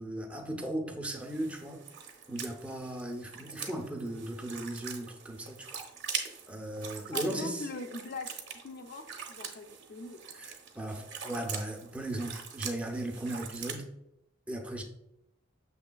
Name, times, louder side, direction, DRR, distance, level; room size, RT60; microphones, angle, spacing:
voice 1, 0.0-1.8 2.3-5.7 6.5-7.6 10.4-13.9 14.5-14.8, right 1 dB, 5° right, 1 dB, 0.5 m, -37 dB
sound 1, 1.1-13.8, right 6 dB, 60° right, 0.7 m, -43 dB
voice 2, 7.1-8.3 8.6-10.4, left 3 dB, 50° left, 7 dB, 0.5 m, -41 dB
6.4 x 3.2 x 2.2 m, 0.82 s
head